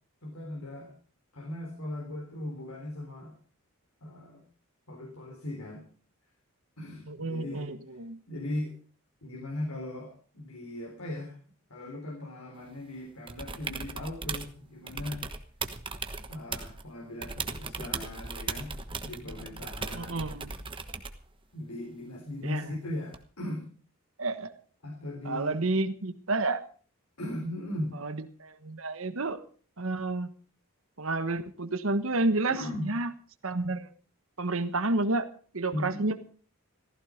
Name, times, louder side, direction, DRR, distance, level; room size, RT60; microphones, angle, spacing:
voice 1, 0.2-0.9 1.3-3.4 4.0-4.4 4.9-5.9 6.8-7.7 8.3-8.7 9.2-11.4 11.7-15.2 16.3-20.2 21.5-23.7 24.8-25.7 27.2-27.9 32.5-32.9 35.7-36.0, left 1 dB, 80° left, 1 dB, 3.7 m, -38 dB
voice 2, 7.0-8.2 19.9-20.5 22.4-22.7 24.2-24.5 25.2-26.7 28.0-29.4 29.8-30.3 31.0-32.6 32.8-33.1 33.4-33.9 34.4-35.3 35.5-36.3, right 2 dB, 70° right, 10 dB, 1.3 m, -30 dB
sound 1, 13.3-14.5 14.9-16.8 17.2-21.2 23.1-23.2, right 4 dB, 25° right, 1.2 m, -37 dB
15.0 x 15.0 x 5.1 m, 0.42 s
head